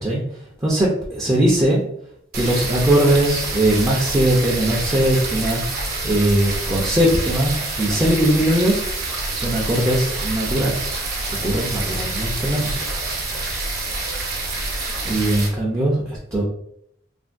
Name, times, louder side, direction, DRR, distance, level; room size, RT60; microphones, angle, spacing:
voice 1, 0.6-1.8 2.3-5.6 6.0-7.5 7.8-8.8 9.3-11.0 11.3-12.8 14.9-16.4, right 1 dB, 15° right, -4 dB, 0.5 m, -20 dB
sound 1, 2.3-15.5, right 2 dB, 50° right, 0.8 m, -27 dB
3.3 x 2.2 x 2.5 m, 0.69 s
head